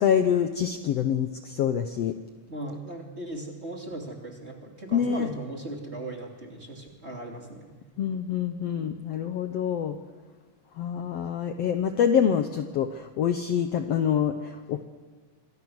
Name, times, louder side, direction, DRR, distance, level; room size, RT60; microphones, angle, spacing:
voice 1, 0.0-2.2 4.9-5.3 8.0-10.0 10.8-14.8, left 8 dB, 65° left, 7 dB, 1.7 m, -26 dB
voice 2, 2.5-7.7, right 1 dB, 20° right, 1 dB, 2.9 m, -38 dB
27.0 x 24.0 x 6.4 m, 1.4 s
omnidirectional pair, 3.7 m